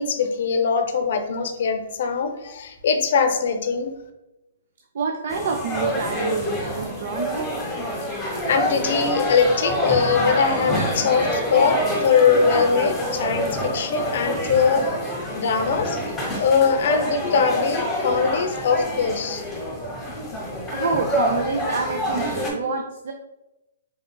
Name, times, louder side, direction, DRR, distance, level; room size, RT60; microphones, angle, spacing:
voice 1, 0.0-3.9 8.5-14.8 15.3-16.0 16.4-19.4, left 5 dB, 60° left, 7 dB, 0.5 m, -21 dB
voice 2, 4.9-7.5 20.7-23.1, right 4 dB, 65° right, 4 dB, 0.4 m, -27 dB
sound 1, 5.3-22.5, equal, 10° left, 1.2 m, -27 dB
4.1 x 3.6 x 2.2 m, 0.96 s
hypercardioid pair, 140°, 0 cm